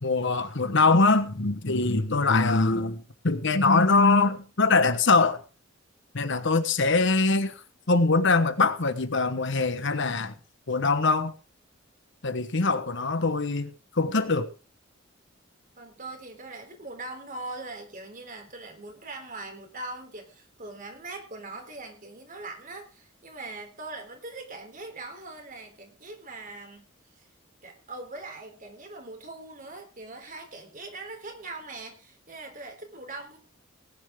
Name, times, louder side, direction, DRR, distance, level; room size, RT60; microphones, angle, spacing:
voice 1, 0.0-5.4 6.1-7.5 7.9-10.3 10.7-11.3 12.2-13.7 14.0-14.5, left 3 dB, 65° left, 1.3 m, -23 dB
voice 2, 15.8-26.8 27.2-27.3 27.6-33.4, right 2 dB, 45° right, 3.6 m, -41 dB
19.0 x 10.0 x 3.7 m
head